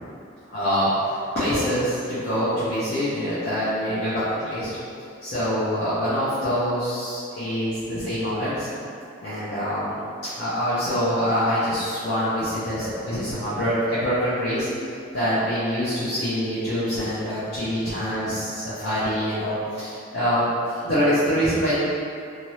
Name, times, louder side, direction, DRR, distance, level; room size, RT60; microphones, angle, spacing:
voice 1, 0.5-4.7 5.2-8.7 9.2-21.7, equal, 50° left, -14 dB, 0.7 m, -25 dB
2.7 x 2.6 x 3.1 m, 2.6 s
head